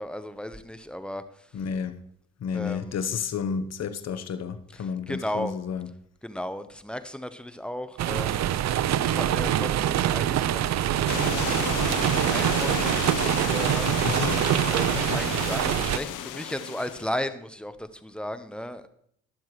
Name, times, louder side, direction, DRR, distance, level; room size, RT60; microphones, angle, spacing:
voice 1, 0.0-1.5 2.5-2.9 4.7-5.5 6.2-8.4 9.0-13.9 14.7-18.9, left 1 dB, 5° left, 1.0 m, -35 dB
voice 2, 1.5-2.0 2.4-5.9 14.0-14.4 14.9-15.2, left 6 dB, 55° left, 1.1 m, -31 dB
sound 1, 8.0-16.0, right 11 dB, 60° right, 0.6 m, -25 dB
sound 2, 11.1-17.2, left 11 dB, 75° left, 0.9 m, -33 dB
21.5 x 7.2 x 3.2 m
supercardioid pair, 60°, 32 cm